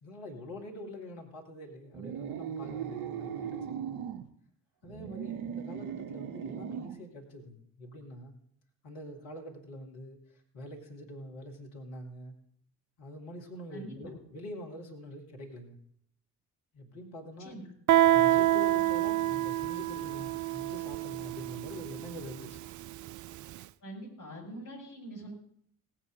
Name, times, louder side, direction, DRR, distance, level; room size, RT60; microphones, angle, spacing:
voice 1, 0.0-3.9 4.8-8.3 8.8-10.2 10.5-12.3 13.0-15.8 16.7-17.6 18.1-22.6, left 1 dB, 65° left, 2 dB, 2.6 m, -45 dB
sound 1, 1.9-4.2 4.8-7.0, right 8 dB, 65° right, 1.2 m, -38 dB
voice 2, 13.7-14.1 17.4-17.7 23.8-25.3, right 1 dB, 40° left, -3 dB, 6.5 m, -44 dB
Guitar, 17.9-23.3, right 14 dB, 40° right, 0.5 m, -27 dB
18.0 x 8.7 x 5.2 m, 0.66 s
figure-of-eight pair, 45°, 49 cm